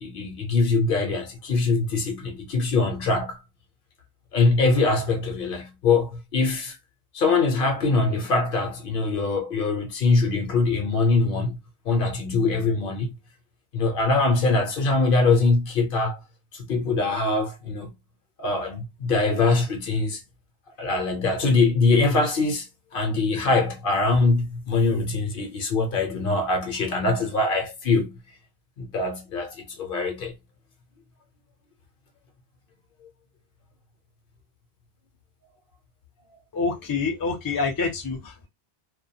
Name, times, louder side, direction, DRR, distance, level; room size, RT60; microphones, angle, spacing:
voice 1, 0.0-3.4 4.3-6.8 7.1-11.6 11.8-13.2 13.7-16.2 16.5-17.9 18.4-20.2 20.8-22.7 22.9-28.2 28.8-30.3, left 3 dB, 65° left, 0.7 m, -23 dB
voice 2, 36.5-38.5, left 4 dB, 25° left, 0.5 m, -27 dB
2.2 x 2.2 x 2.6 m
omnidirectional pair, 1.0 m